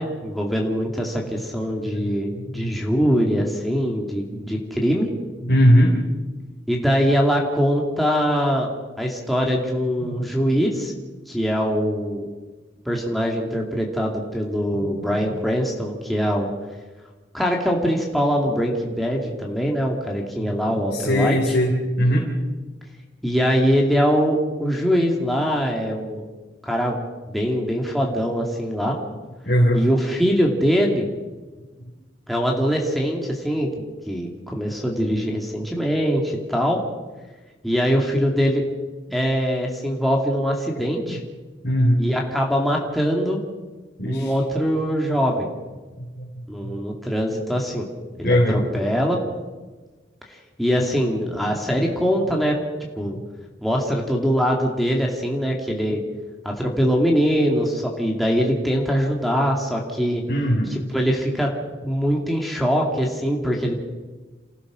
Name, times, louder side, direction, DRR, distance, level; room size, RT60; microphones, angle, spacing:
voice 1, 0.0-5.1 6.7-8.7 9.0-10.9 11.3-12.3 12.9-16.5 17.3-21.6 23.2-26.2 26.6-27.0 27.3-29.0 29.7-31.1 32.3-33.7 34.1-36.8 37.6-38.6 39.1-41.2 42.0-43.4 44.0-45.5 46.5-47.9 48.2-49.2 50.6-52.6 53.0-53.2 53.6-56.0 56.4-60.2 60.7-61.5 61.8-63.8, equal, ahead, -1 dB, 2.4 m, -22 dB
voice 2, 2.4-2.8 4.3-4.4 5.5-5.9 10.0-10.4 14.7-14.9 15.1-15.3 20.5-20.6 20.9-22.3 29.5-29.9 41.6-42.0 44.0-44.7 46.0-46.3 46.6-46.7 48.2-48.6 51.5-51.6 60.3-60.7 63.3-63.4, equal, 55° left, -3 dB, 3.6 m, -20 dB
28.5 x 15.5 x 6.4 m, 1.3 s
head